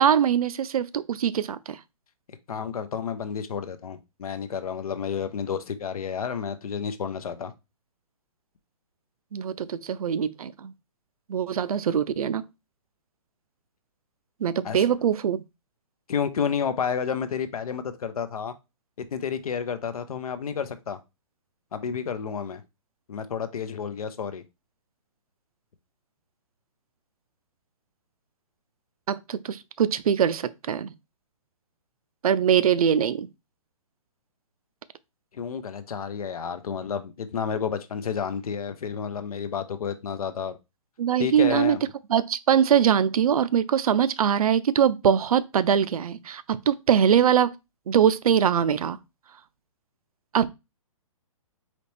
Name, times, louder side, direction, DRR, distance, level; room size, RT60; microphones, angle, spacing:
voice 1, 0.0-1.8 9.3-10.7 11.3-12.4 14.4-15.4 29.1-30.9 32.2-33.3 41.0-41.8 42.1-47.5 47.9-49.0 50.3-50.5, right 8 dB, 90° right, 0.5 m, -22 dB
voice 2, 2.5-7.5 14.6-14.9 16.1-18.5 19.0-21.0 21.7-22.6 23.1-24.4 35.3-40.6 41.2-41.9, left 7 dB, 90° left, 0.7 m, -30 dB
4.1 x 2.9 x 3.2 m
hypercardioid pair, 175°, 18 cm